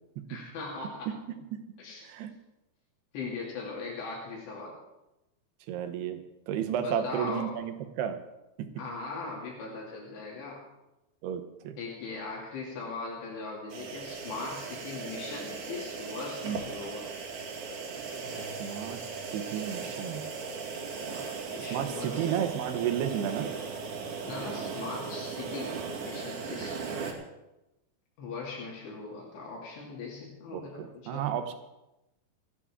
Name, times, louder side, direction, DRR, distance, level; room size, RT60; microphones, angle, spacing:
voice 1, 0.3-1.1 1.8-2.0 3.1-4.8 6.8-7.6 8.8-10.6 11.8-17.1 21.1-21.2 21.5-22.3 24.2-26.8 28.2-31.4, left 4 dB, 80° left, -3 dB, 4.9 m, -39 dB
voice 2, 2.0-2.3 5.7-6.2 6.5-8.2 8.6-8.7 11.2-11.8 16.4-16.6 18.4-19.0 19.3-20.3 21.6-23.5 30.5-31.5, right 9 dB, 75° right, 8 dB, 3.1 m, -32 dB
sound 1, 13.7-27.1, right 5 dB, 50° right, 3.4 m, -37 dB
28.0 x 10.0 x 3.7 m, 0.95 s
omnidirectional pair, 4.8 m